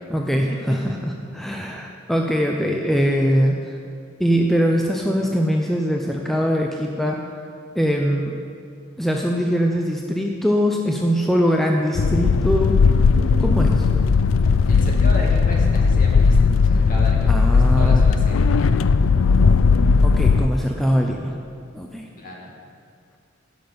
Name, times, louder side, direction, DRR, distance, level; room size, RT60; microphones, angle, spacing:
voice 1, 0.1-3.7 4.2-7.2 7.7-8.4 9.0-12.7 13.4-13.9 17.3-18.0 20.0-21.3 21.7-22.1, equal, ahead, 0 dB, 0.6 m, -22 dB
sound 1, 12.0-20.5, left 5 dB, 80° left, 0.4 m, -17 dB
voice 2, 14.7-18.8 22.2-22.5, left 1 dB, 45° left, -2 dB, 2.3 m, -34 dB
15.5 x 6.1 x 7.0 m, 2.3 s
head